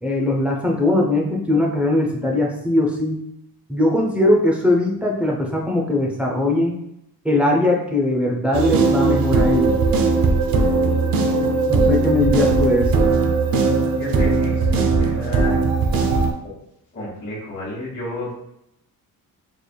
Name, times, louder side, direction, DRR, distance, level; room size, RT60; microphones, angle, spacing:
voice 1, 0.0-3.3 3.7-6.8 7.2-9.8 11.7-13.1, left 1 dB, 5° right, -1 dB, 0.4 m, -20 dB
sound 1, 8.5-16.3, right 3 dB, 65° right, 0.5 m, -18 dB
voice 2, 13.9-15.7 16.4-16.6 16.9-18.3, left 1 dB, 30° left, -8 dB, 1.3 m, -31 dB
4.2 x 3.2 x 2.2 m, 0.78 s
wide cardioid pair, 175°, 38 cm